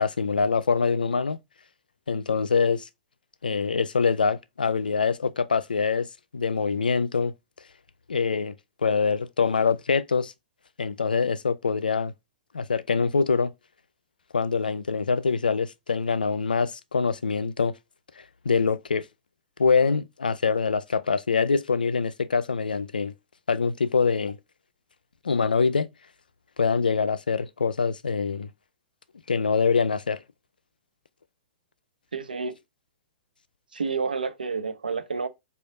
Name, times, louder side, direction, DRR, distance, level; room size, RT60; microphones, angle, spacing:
voice 1, 0.0-1.4 2.1-2.9 3.4-6.1 6.3-7.3 8.1-8.6 8.8-10.3 10.8-12.1 12.5-13.5 14.3-17.7 18.2-19.1 19.6-23.1 23.5-24.4 25.2-25.9 26.6-28.5 29.3-30.2, left 5 dB, 85° left, 0.3 m, -24 dB
voice 2, 32.1-32.5 33.7-35.3, right 5 dB, 90° right, 0.5 m, -29 dB
3.3 x 2.4 x 3.6 m
hypercardioid pair, 110°, 5 cm